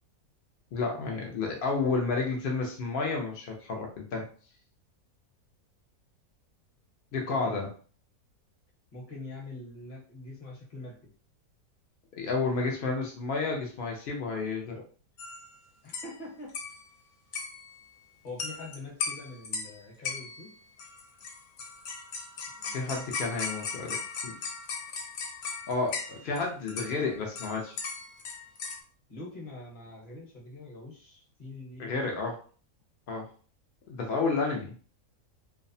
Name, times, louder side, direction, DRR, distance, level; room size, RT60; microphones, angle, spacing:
voice 1, 0.7-4.3 7.1-7.7 12.1-14.8 22.6-24.0 24.2-24.4 25.7-27.8 31.8-32.3 33.1-33.3 33.9-34.7, left 4 dB, 85° left, 0 dB, 0.4 m, -31 dB
voice 2, 7.2-7.6 8.9-10.9 15.8-16.5 18.2-20.5 29.1-32.2, left 2 dB, 40° left, -3 dB, 0.9 m, -44 dB
sound 1, 15.2-15.6 15.9-16.1 16.5-16.9 17.3-17.8 18.4-18.8 19.0-19.7 20.0-20.5 20.8-26.4 26.7-28.8, left 5 dB, 70° left, 0.9 m, -37 dB
2.6 x 2.1 x 2.6 m, 0.41 s
omnidirectional pair, 1.6 m